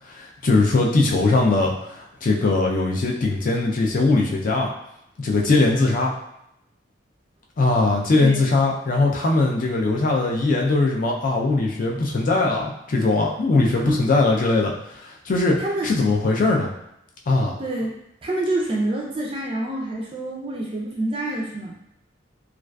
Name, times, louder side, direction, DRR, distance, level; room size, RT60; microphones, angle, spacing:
voice 1, 0.1-1.7 2.2-4.7 5.2-6.1 7.6-14.7 15.0-15.6 15.8-16.7 17.3-17.6, left 3 dB, 45° left, 0 dB, 0.4 m, -20 dB
voice 2, 13.7-14.0 15.6-15.9 17.6-17.9 18.2-21.8, right 1 dB, 30° right, -3 dB, 0.3 m, -27 dB
2.4 x 2.4 x 2.2 m, 0.80 s
head